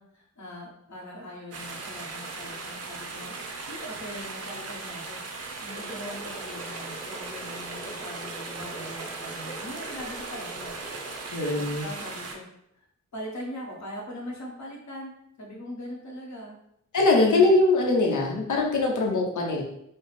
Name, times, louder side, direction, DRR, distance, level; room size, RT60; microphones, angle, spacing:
voice 1, 0.0-3.3 3.7-5.2 5.6-10.7 11.5-12.4 12.7-12.9 13.1-15.1 15.4-16.6, equal, 70° left, -3 dB, 1.2 m, -41 dB
sound 1, 1.5-12.4, right 3 dB, 55° right, 0.6 m, -38 dB
sound 2, 5.7-11.3, right 1 dB, 40° left, 1.1 m, -43 dB
voice 2, 11.3-11.9 16.9-19.6, left 2 dB, 85° left, -1 dB, 0.8 m, -22 dB
5.1 x 2.0 x 4.1 m, 0.77 s
wide cardioid pair, 170°, 30 cm